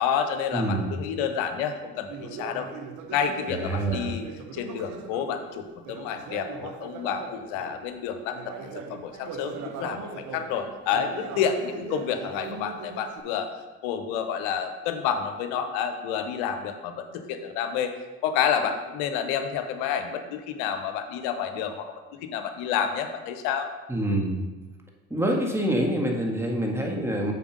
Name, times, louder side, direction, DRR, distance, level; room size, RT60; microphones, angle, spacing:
voice 1, 0.0-2.7 3.1-4.3 4.5-8.5 8.9-13.5 13.8-17.9 18.2-21.9 22.2-23.7, left 8 dB, 75° left, 7 dB, 0.8 m, -29 dB
voice 2, 0.5-0.9 3.5-4.1 23.9-24.4 25.1-27.3, right 1 dB, 5° right, 0 dB, 1.6 m, -26 dB
Conversation, 2.1-7.8 8.3-13.2, right 5 dB, 55° right, 0.8 m, -40 dB
6.9 x 4.4 x 5.1 m, 1.2 s
hypercardioid pair, 55°, 35 cm